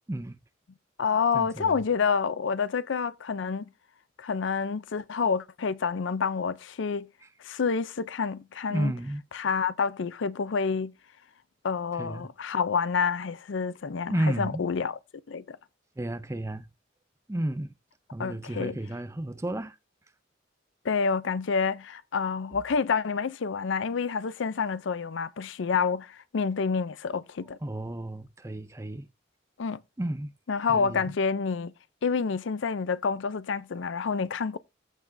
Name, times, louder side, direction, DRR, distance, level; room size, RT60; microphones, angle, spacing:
voice 1, 0.1-0.4 1.3-1.9 7.2-7.3 8.7-9.2 12.0-12.3 14.1-14.7 16.0-16.7 17.3-17.7 18.1-19.8 27.6-29.1 30.0-30.3 30.7-31.1, right 1 dB, 15° right, 0.5 m, -32 dB
voice 2, 1.0-3.7 4.2-7.1 7.4-8.9 9.3-10.9 11.6-15.0 15.3-15.6 18.2-18.8 20.8-27.6 29.6-29.8 30.5-31.7 32.0-34.6, left 5 dB, 75° left, 0.5 m, -28 dB
14.5 x 5.9 x 2.6 m
head